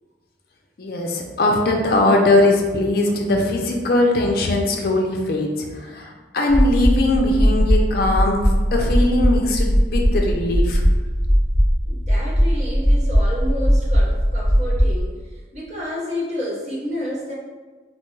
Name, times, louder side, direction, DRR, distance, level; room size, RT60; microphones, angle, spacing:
voice 1, 0.8-10.8, left 2 dB, 55° left, 1 dB, 0.4 m, -20 dB
sound 1, 6.5-15.0, equal, 80° right, 1.4 m, -18 dB
voice 2, 11.8-17.3, left 1 dB, 40° right, -5 dB, 0.8 m, -30 dB
4.2 x 2.2 x 3.1 m, 1.3 s
head